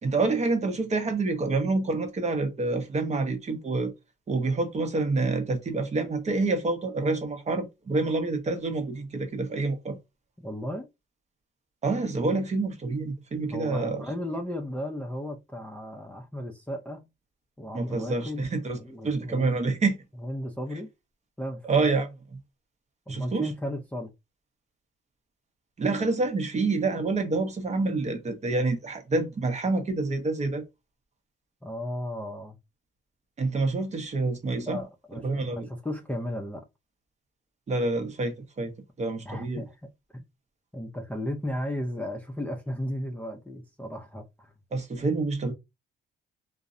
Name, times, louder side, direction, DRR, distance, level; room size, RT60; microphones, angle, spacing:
voice 1, 0.0-3.9 4.3-10.0 11.8-14.0 17.7-18.8 19.0-20.0 21.6-22.4 23.1-23.5 25.8-30.6 33.4-34.8 35.2-35.7 37.7-39.6 44.7-45.5, right 3 dB, 35° right, 0.7 m, -27 dB
voice 2, 10.4-10.9 13.5-17.1 17.6-19.6 20.2-20.9 21.4-21.9 23.1-24.1 31.6-32.6 34.5-36.6 39.3-40.2 40.7-44.5, left 1 dB, 5° left, 0.4 m, -35 dB
2.6 x 2.0 x 2.4 m
cardioid pair, 90°, 20 cm